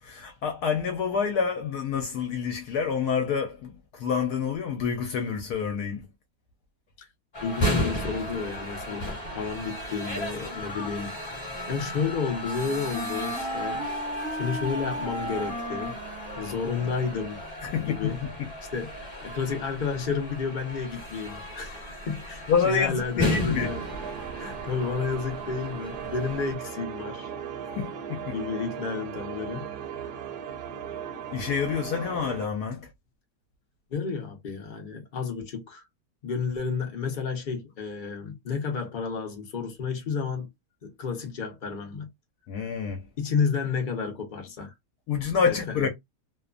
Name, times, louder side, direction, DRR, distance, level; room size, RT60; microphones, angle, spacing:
voice 1, 0.0-6.1 17.6-18.5 22.5-23.7 27.8-28.4 31.3-32.9 42.5-43.0 45.1-45.9, left 6 dB, 75° left, 1.1 m, -28 dB
sound 1, 7.3-26.5, left 1 dB, 25° left, 1.1 m, -35 dB
voice 2, 7.4-11.1 11.7-13.8 14.3-16.0 16.4-18.2 18.7-23.8 24.4-27.3 28.3-30.0 33.9-35.8 36.2-40.5 40.8-42.1 43.2-44.7 45.4-45.8, left 5 dB, 55° left, 0.5 m, -31 dB
Wind instrument woodwind instrument, 11.5-17.3, right 1 dB, 5° right, 0.7 m, -36 dB
sound 2, 23.6-32.5, right 8 dB, 75° right, 1.1 m, -37 dB
2.9 x 2.1 x 2.4 m
omnidirectional pair, 1.8 m